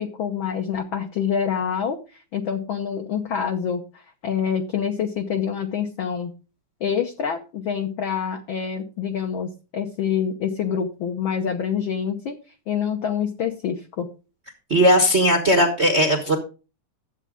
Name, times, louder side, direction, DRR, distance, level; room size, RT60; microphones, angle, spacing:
voice 1, 0.0-6.3 6.8-12.4 12.7-14.1, left 7 dB, 65° left, 4 dB, 1.2 m, -26 dB
voice 2, 14.7-16.4, equal, 55° right, 4 dB, 0.7 m, -17 dB
12.5 x 8.2 x 3.6 m, 0.33 s
omnidirectional pair, 3.4 m